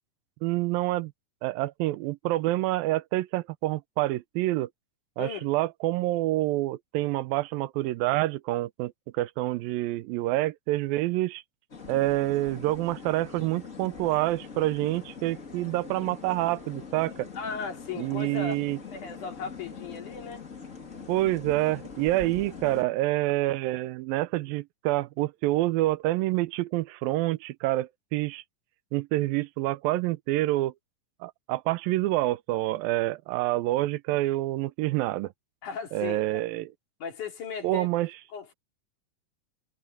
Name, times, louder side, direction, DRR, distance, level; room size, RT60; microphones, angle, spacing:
voice 1, 0.4-1.1 1.4-4.7 5.2-11.4 11.9-17.3 18.0-18.8 21.1-28.4 28.9-30.7 31.2-35.3 35.9-36.7 37.6-38.1, right 17 dB, 90° right, 2.5 m, -27 dB
sound 1, 11.7-22.8, left 5 dB, 25° left, 2.2 m, -43 dB
voice 2, 17.3-18.6 18.9-20.4 35.6-36.4 37.0-37.9 38.3-38.5, left 6 dB, 60° left, 4.5 m, -36 dB
omnidirectional pair, 4.0 m